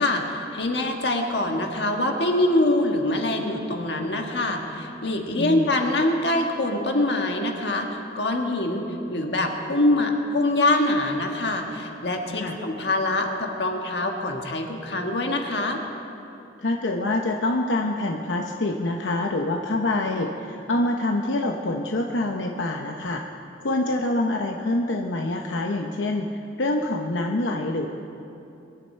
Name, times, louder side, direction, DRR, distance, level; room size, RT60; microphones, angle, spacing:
voice 1, 0.0-15.8, left 1 dB, 65° left, 2 dB, 1.6 m, -24 dB
voice 2, 5.3-5.7 12.4-12.5 16.6-23.2 23.6-26.3 26.6-27.9, left 2 dB, 90° left, 2 dB, 0.8 m, -26 dB
23.5 x 11.5 x 4.4 m, 2.9 s
head